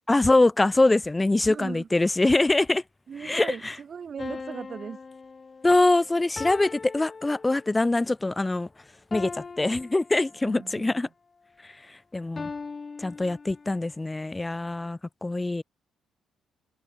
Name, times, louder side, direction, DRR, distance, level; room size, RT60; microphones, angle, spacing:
voice 1, 0.1-2.8 3.2-3.8 5.6-8.7 9.1-11.1 11.6-12.5 13.0-15.6, left 2 dB, 15° left, 0.6 m, -24 dB
voice 2, 1.4-1.9 3.1-5.0 10.4-11.0, right 6 dB, 50° right, 0.7 m, -38 dB
sound 1, 4.2-7.9 9.1-10.7 12.4-13.9, left 4 dB, 35° left, 1.4 m, -40 dB
cardioid pair, 90°, 0 cm